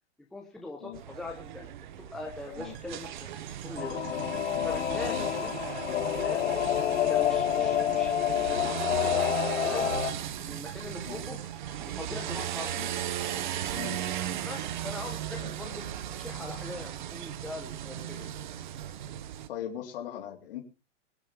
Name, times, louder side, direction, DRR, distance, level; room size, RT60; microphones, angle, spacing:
voice 1, 0.3-3.3 3.6-4.0 4.6-10.0 10.4-11.4 11.8-12.8 13.3-13.8 14.4-18.3, left 3 dB, ahead, -1 dB, 1.0 m, -42 dB
sound 1, 0.9-19.5, right 11 dB, 40° right, 0.8 m, -37 dB
sound 2, 2.6-14.8, right 7 dB, 25° right, 1.7 m, -50 dB
Singing / Musical instrument, 3.8-10.1, left 11 dB, 75° left, 2.5 m, -28 dB
voice 2, 19.5-20.6, left 10 dB, 50° left, 2 dB, 3.4 m, -40 dB
24.5 x 8.4 x 3.5 m, 0.31 s
hypercardioid pair, 170°, 36 cm